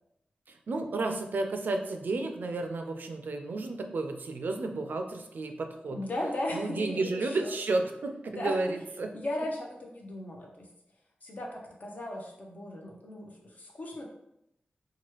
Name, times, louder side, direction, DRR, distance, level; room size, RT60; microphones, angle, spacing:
voice 1, 0.5-6.0 6.5-9.1, right 3 dB, 70° right, 5 dB, 0.4 m, -32 dB
voice 2, 5.9-7.5 8.3-8.6 9.1-10.7 11.2-14.0, left 1 dB, 55° left, -1 dB, 0.7 m, -36 dB
3.0 x 2.3 x 3.0 m, 0.82 s
wide cardioid pair, 80°, 3 cm